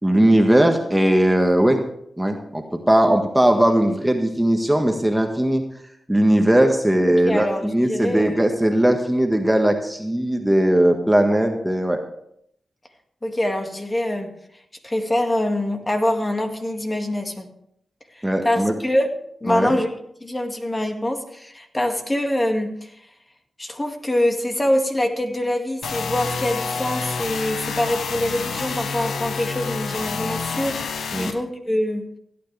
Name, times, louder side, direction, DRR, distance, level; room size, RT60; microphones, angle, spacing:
voice 1, 0.0-1.8 2.2-5.6 6.1-12.0 18.2-18.7 19.5-19.8 31.1-31.3, right 1 dB, 10° right, 4 dB, 1.6 m, -19 dB
voice 2, 7.1-8.4 13.2-14.3 14.8-17.5 18.1-19.1 19.4-19.9 20.2-23.0 23.6-32.1, left 1 dB, 25° left, 4 dB, 2.1 m, -24 dB
sound 1, 25.8-31.3, left 5 dB, 80° left, 1.1 m, -28 dB
17.0 x 9.5 x 3.4 m, 0.72 s
cardioid pair, 45°, 0 cm